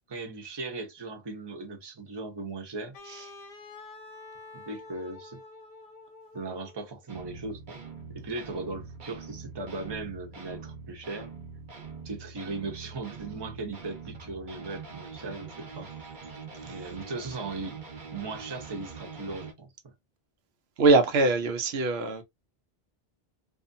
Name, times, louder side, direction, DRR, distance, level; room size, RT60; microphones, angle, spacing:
voice 1, 0.1-3.0 4.5-5.4 6.3-7.8 8.1-11.3 12.0-15.9 16.6-17.8 18.1-19.7, right 3 dB, 30° right, 0.7 m, -38 dB
Wind instrument woodwind instrument, 2.9-7.0, left 3 dB, 65° left, 0.8 m, -48 dB
sound 1, 7.1-19.5, right 5 dB, 50° right, 0.9 m, -44 dB
voice 2, 20.8-22.2, right 3 dB, 80° right, 0.9 m, -22 dB
2.7 x 2.4 x 2.5 m
omnidirectional pair, 1.0 m